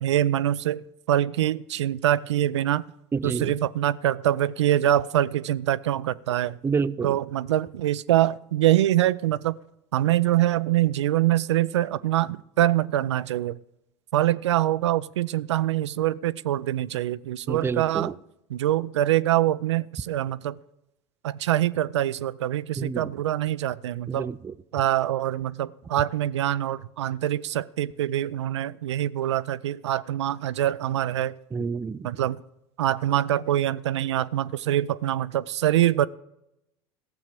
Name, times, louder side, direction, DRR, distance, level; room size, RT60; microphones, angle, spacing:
voice 1, 0.0-2.8 3.2-6.6 7.0-9.6 9.9-13.6 14.1-18.1 18.5-20.6 21.2-24.3 24.7-31.4 32.0-32.4 32.8-36.1, right 13 dB, 80° right, 16 dB, 0.4 m, -24 dB
voice 2, 3.1-3.6 6.6-7.2 17.5-18.1 22.8-23.1 24.1-24.5 31.5-32.1, right 5 dB, 15° right, 16 dB, 0.4 m, -28 dB
14.5 x 7.3 x 6.7 m, 0.85 s
hypercardioid pair, 80°, 14 cm